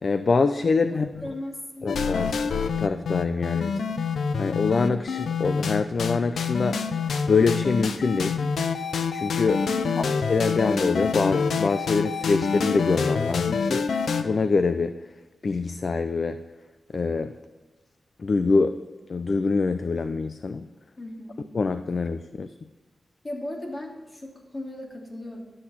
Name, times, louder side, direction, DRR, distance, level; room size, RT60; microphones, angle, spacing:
voice 1, 0.0-1.3 1.8-2.4 2.8-3.7 4.4-6.8 7.3-8.4 9.1-9.7 10.3-13.9 14.2-15.0 15.4-16.4 16.9-17.3 18.2-18.8 19.1-20.6 21.5-22.5, left 4 dB, 55° left, 10 dB, 0.5 m, -24 dB
voice 2, 0.9-1.9 9.7-10.1 21.0-21.4 23.2-25.4, left 1 dB, 35° left, -1 dB, 3.1 m, -36 dB
sound 1, 1.9-14.2, left 5 dB, 85° left, 0.8 m, -26 dB
12.0 x 8.7 x 5.8 m, 1.2 s
cardioid pair, 80°, 0 cm